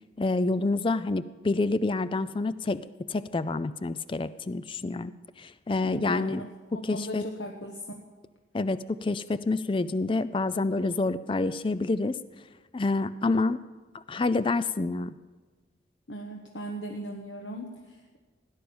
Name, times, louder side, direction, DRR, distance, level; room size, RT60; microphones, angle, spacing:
voice 1, 0.2-6.4 6.8-7.2 8.5-12.2 12.7-13.6 13.9-15.1, left 3 dB, 25° left, 14 dB, 0.4 m, -28 dB
voice 2, 5.8-6.5 6.9-8.0 16.1-18.2, equal, 70° left, 2 dB, 1.2 m, -38 dB
16.5 x 10.5 x 7.1 m, 1.3 s
head